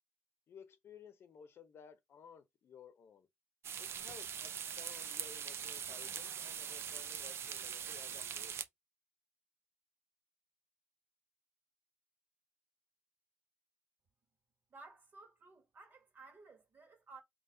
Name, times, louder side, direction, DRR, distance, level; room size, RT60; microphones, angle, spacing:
voice 1, 0.5-3.3 3.8-8.6, left 7 dB, 55° left, 0.8 m, -57 dB
sound 1, 3.6-8.7, right 8 dB, 60° right, 0.5 m, -42 dB
sound 2, 4.0-4.6 5.6-8.3, right 6 dB, 85° right, 1.0 m, -64 dB
voice 2, 14.7-17.2, right 3 dB, 40° right, 1.8 m, -56 dB
4.0 x 3.0 x 3.8 m
cardioid pair, 150°, 5 cm